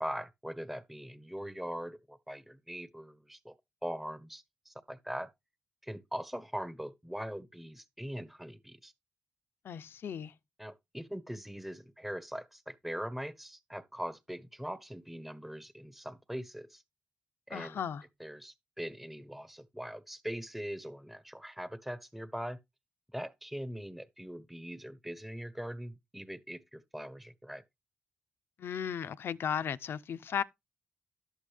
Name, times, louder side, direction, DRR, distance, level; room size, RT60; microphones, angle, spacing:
voice 1, 0.0-3.5 3.8-5.3 5.8-8.9 10.6-16.8 17.5-17.8 18.2-22.6 23.1-27.6, equal, 5° right, 1.4 m, -41 dB
voice 2, 9.6-10.3 17.5-18.0 28.6-30.4, left 8 dB, 70° left, 0.6 m, -35 dB
11.0 x 7.1 x 3.5 m
supercardioid pair, 55°, 4 cm